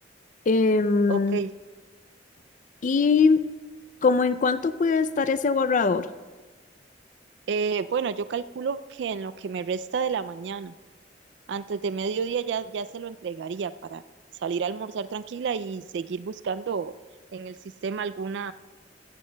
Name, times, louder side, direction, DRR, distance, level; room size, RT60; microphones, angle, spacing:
voice 1, 0.5-1.4 2.8-3.5 4.0-6.1, left 4 dB, 45° left, 13 dB, 0.4 m, -21 dB
voice 2, 1.1-1.5 7.5-10.7 11.5-14.0 14.4-16.9 17.3-17.6 17.8-18.5, right 6 dB, 70° right, 13 dB, 0.3 m, -30 dB
15.5 x 13.5 x 2.2 m, 1.3 s
head